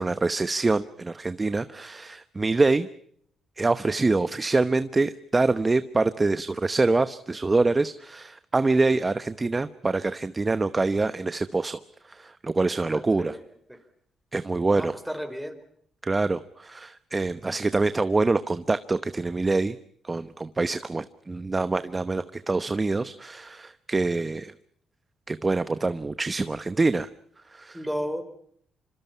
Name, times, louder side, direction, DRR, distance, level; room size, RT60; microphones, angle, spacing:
voice 1, 0.0-2.9 3.6-11.8 12.1-13.4 14.3-14.9 16.0-19.8 20.0-24.5 25.3-27.1 27.5-27.8, right 3 dB, 25° right, 12 dB, 1.0 m, -25 dB
voice 2, 12.9-13.4 13.7-13.8 14.7-15.6 27.7-28.2, equal, ahead, 7 dB, 4.7 m, -33 dB
26.5 x 26.0 x 5.7 m, 0.66 s
cardioid pair, 90°, 0 cm